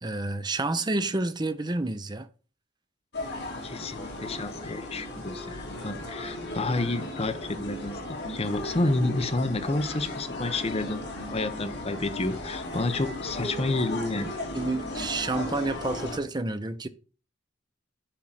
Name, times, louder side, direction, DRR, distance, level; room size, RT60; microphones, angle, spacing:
voice 1, 0.0-2.3 14.5-16.9, right 2 dB, 20° right, 0.6 m, -29 dB
sound 1, 3.1-16.2, left 1 dB, 60° left, 3.3 m, -36 dB
voice 2, 3.6-8.0 8.3-14.3, left 2 dB, 30° left, 0.8 m, -30 dB
10.0 x 3.7 x 5.9 m
head